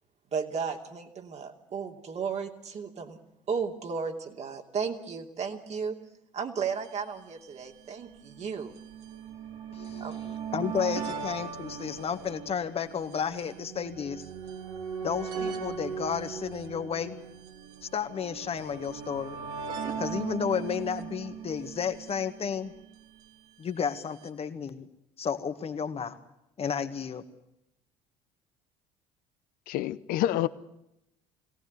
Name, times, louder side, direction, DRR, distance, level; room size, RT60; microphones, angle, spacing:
voice 1, 0.3-3.2 3.5-6.0 6.3-8.7 10.0-10.2, right 6 dB, 45° right, 2.9 m, -34 dB
sound 1, 6.6-6.7 6.8-6.9 7.8-23.0 24.0-24.1 24.3-24.4, right 6 dB, 65° right, 3.1 m, -39 dB
voice 2, 9.7-14.2 15.0-17.2 17.9-19.4 20.0-22.7 23.6-24.9 25.2-26.2 26.6-27.2, left 7 dB, 35° left, 1.9 m, -32 dB
voice 3, 29.7-30.5, left 13 dB, 60° left, 0.9 m, -27 dB
22.5 x 17.5 x 9.6 m
hypercardioid pair, 60°, 16 cm